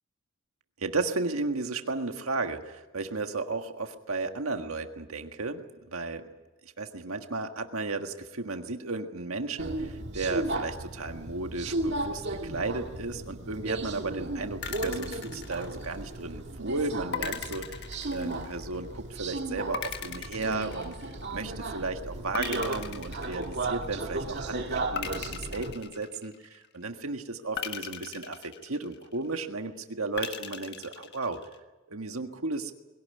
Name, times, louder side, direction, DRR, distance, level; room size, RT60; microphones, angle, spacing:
voice 1, 0.8-5.6 5.9-6.2 6.6-20.9 21.3-31.4 31.9-32.7, right 3 dB, 85° right, 6 dB, 1.6 m, -34 dB
Subway metro underground, 9.6-25.7, right 2 dB, 55° right, 2.0 m, -35 dB
sound 1, 14.6-16.2 17.1-18.8 19.7-21.5 22.3-24.0 24.9-26.7 27.6-29.3 30.2-31.6, left 7 dB, 55° left, 1.5 m, -39 dB
22.0 x 17.5 x 9.7 m, 1.1 s
head